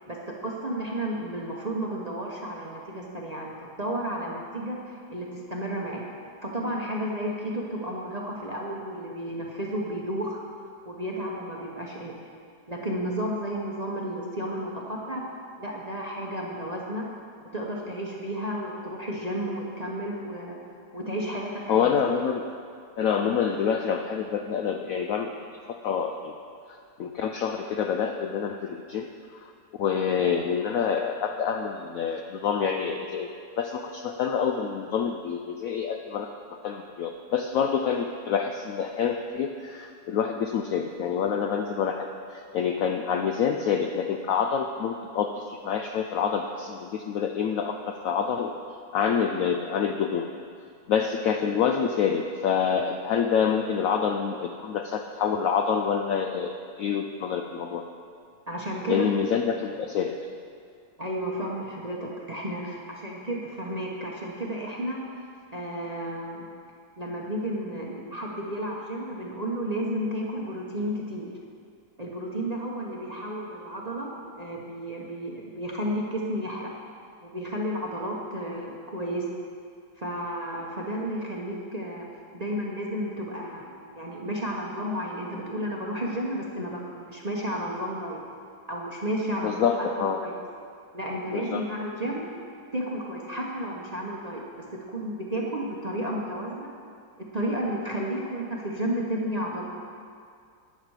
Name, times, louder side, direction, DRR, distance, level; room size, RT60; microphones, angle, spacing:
voice 1, 0.1-4.8 5.1-6.0 6.4-10.4 10.8-12.2 12.7-15.3 15.6-17.1 17.4-20.6 20.9-21.9 58.5-59.1 61.0-65.0 65.5-66.5 67.0-71.3 72.0-76.7 77.2-79.3 80.0-82.1 82.3-88.2 88.7-89.7 90.2-90.4 90.9-92.2 92.7-96.7 97.3-99.7, equal, 30° right, -2 dB, 0.8 m, -32 dB
voice 2, 21.7-22.4 23.0-25.3 25.7-26.3 27.0-29.1 29.8-33.3 33.6-48.5 48.9-50.3 50.9-56.5 56.8-57.9 58.9-60.2 89.4-90.2 91.3-91.7, left 7 dB, 70° left, 5 dB, 0.8 m, -27 dB
11.5 x 8.9 x 4.8 m, 2.3 s
omnidirectional pair, 1.9 m